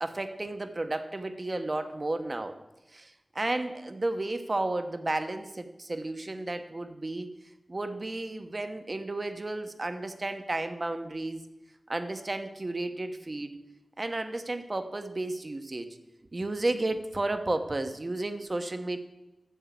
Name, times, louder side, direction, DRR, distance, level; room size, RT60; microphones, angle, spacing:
voice 1, 0.0-2.6 2.9-7.4 7.7-11.4 11.9-13.6 14.0-16.0 16.3-19.0, right 2 dB, 40° right, 8 dB, 1.0 m, -33 dB
10.0 x 7.3 x 8.2 m, 1.0 s
wide cardioid pair, 65°, 0 cm